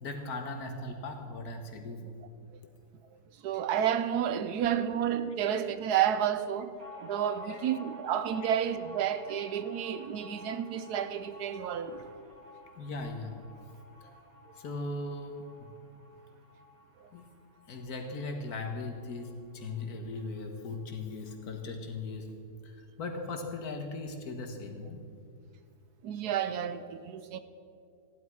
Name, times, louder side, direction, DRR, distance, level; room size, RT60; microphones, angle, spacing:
voice 1, 0.0-2.1 7.5-7.6 12.8-13.4 14.6-15.7 17.1-17.3 17.7-22.4 22.6-25.0, left 3 dB, 70° left, 1.8 m, -38 dB
voice 2, 3.4-6.7 7.0-12.1 26.0-27.4, right 9 dB, 80° right, 1.2 m, -30 dB
sound 1, 6.8-19.9 20.2-20.3 20.6-21.3, left 3 dB, 60° right, 2.3 m, -50 dB
15.0 x 11.5 x 4.8 m
omnidirectional pair, 1.7 m